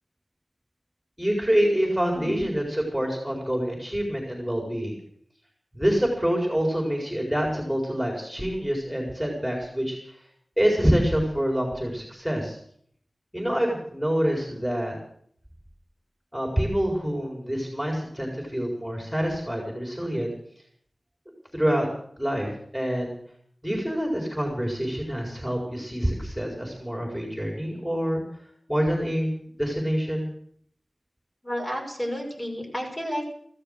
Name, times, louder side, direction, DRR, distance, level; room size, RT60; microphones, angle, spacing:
voice 1, 1.2-5.0 5.7-10.0 10.6-12.6 13.3-14.9 16.3-20.3 21.5-21.9 22.2-22.5 22.7-23.2 23.6-28.2 28.7-29.3 29.6-30.3, equal, ahead, 0 dB, 4.5 m, -26 dB
voice 2, 2.1-2.4 31.4-33.3, equal, 30° left, 0 dB, 6.1 m, -31 dB
15.5 x 13.5 x 6.7 m, 0.62 s
wide cardioid pair, 65°, 0 cm